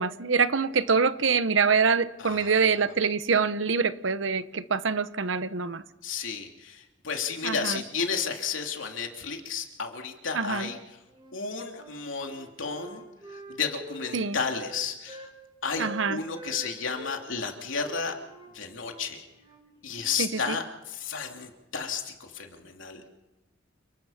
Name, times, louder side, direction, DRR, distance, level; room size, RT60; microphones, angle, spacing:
voice 1, 0.0-5.8 7.4-7.8 10.3-10.7 14.1-14.4 15.8-16.2 20.2-20.6, right 5 dB, 75° right, 14 dB, 0.9 m, -25 dB
voice 2, 2.2-2.8 6.0-10.8 11.3-13.0 13.5-15.3 15.6-18.1 18.5-19.2 19.8-23.0, left 5 dB, 85° left, 2 dB, 3.1 m, -32 dB
Wind instrument woodwind instrument, 11.1-11.9 12.3-15.4 15.7-17.2 17.8-20.3, right 2 dB, 25° right, 5.1 m, -46 dB
29.5 x 19.5 x 5.8 m, 1.1 s
head